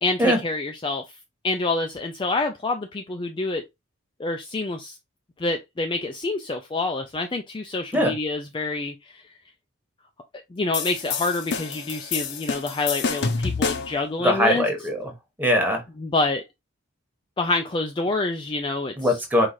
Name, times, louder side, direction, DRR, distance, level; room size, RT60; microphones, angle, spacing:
voice 1, 0.0-1.0 1.4-3.6 4.2-5.0 5.4-9.2 10.5-14.7 16.0-16.4 17.4-19.2, left 3 dB, 20° left, 0.3 m, -27 dB
sound 1, 10.7-14.0, left 5 dB, 55° left, 0.7 m, -28 dB
voice 2, 14.2-15.1 15.4-15.8 19.0-19.5, equal, 10° right, 1.2 m, -21 dB
4.7 x 2.4 x 4.1 m
head